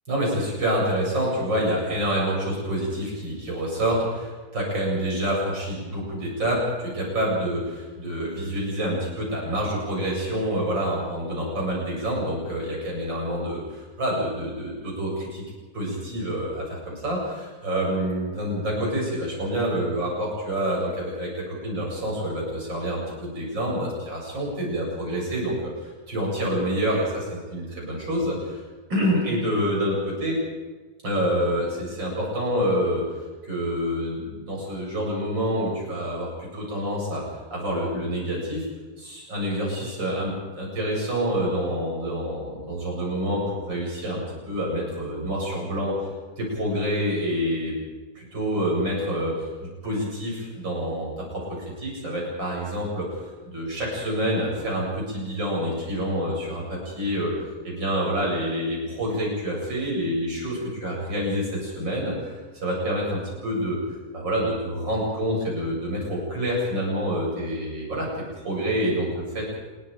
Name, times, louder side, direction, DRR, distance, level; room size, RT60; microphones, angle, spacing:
voice 1, 0.1-15.4 15.7-28.6 28.9-30.4 31.0-33.1 33.4-37.2 37.5-38.7 39.0-46.0 46.4-47.7 48.2-51.5 51.8-53.1 53.4-57.3 57.6-62.3 62.6-63.8 64.1-69.5, equal, 80° right, -3 dB, 9.0 m, -27 dB
28.0 x 22.0 x 5.3 m, 1.3 s
omnidirectional pair, 2.0 m